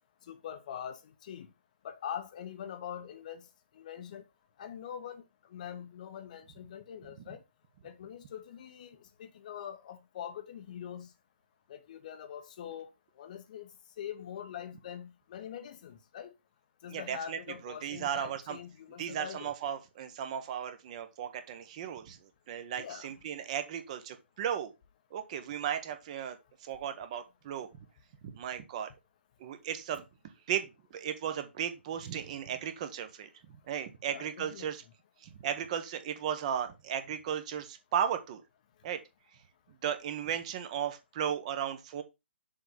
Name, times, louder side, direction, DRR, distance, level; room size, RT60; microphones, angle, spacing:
voice 1, 0.3-1.5 1.8-3.5 3.7-4.2 4.6-5.2 5.5-7.4 7.8-11.1 11.7-12.9 13.2-13.7 14.0-16.3 16.8-19.5 22.8-23.1 34.1-34.7, left 9 dB, 40° left, 0.8 m, -43 dB
voice 2, 16.9-18.6 19.0-24.7 25.1-27.7 28.2-28.9 29.4-30.0 30.5-34.8 35.2-38.4 38.8-39.0 39.8-42.0, right 9 dB, 35° right, 1.1 m, -35 dB
6.8 x 3.5 x 5.7 m
figure-of-eight pair, 130°, 6 cm